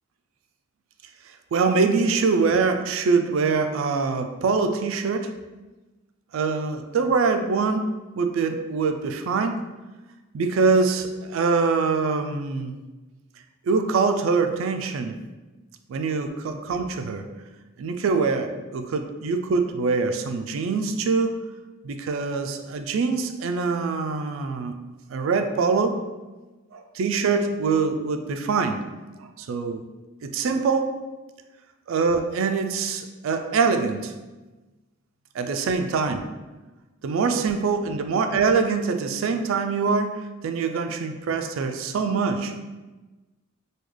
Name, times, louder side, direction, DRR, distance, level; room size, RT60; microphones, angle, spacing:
voice 1, 1.5-5.3 6.3-9.6 10.3-12.7 13.7-15.2 15.9-17.3 17.8-21.4 21.8-24.8 25.1-26.0 26.7-28.8 29.4-29.8 30.2-30.9 31.9-34.1 35.3-36.2 37.0-42.5, right 4 dB, 70° right, 7 dB, 0.3 m, -24 dB
3.7 x 2.2 x 3.1 m, 1.2 s
head